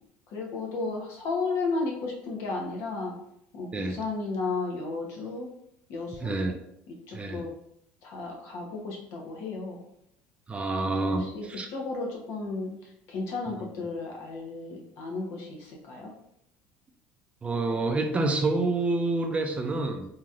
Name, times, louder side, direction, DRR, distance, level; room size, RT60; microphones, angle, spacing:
voice 1, 0.3-3.2 3.5-5.5 5.9-6.3 6.9-7.5 8.0-9.8 11.0-12.7 13.1-16.1, left 3 dB, 65° left, 0 dB, 0.9 m, -33 dB
voice 2, 6.2-6.5 7.1-7.5 10.5-11.7 13.5-13.9 17.4-20.0, right 2 dB, 25° right, 5 dB, 0.4 m, -28 dB
3.1 x 2.8 x 2.4 m, 0.76 s
supercardioid pair, 90°, 5 cm